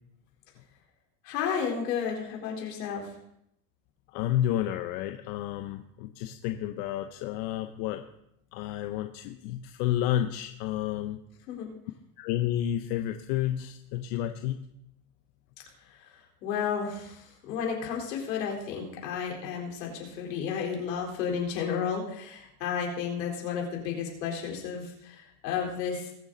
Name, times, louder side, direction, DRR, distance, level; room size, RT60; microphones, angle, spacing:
voice 1, 1.2-3.1 11.5-11.7 16.4-26.1, left 7 dB, 85° left, 0 dB, 4.1 m, -32 dB
voice 2, 4.1-8.0 8.5-11.2 12.2-14.6, left 12 dB, 65° left, 7 dB, 1.0 m, -30 dB
21.0 x 7.2 x 4.0 m, 0.77 s
supercardioid pair, 110°, 48 cm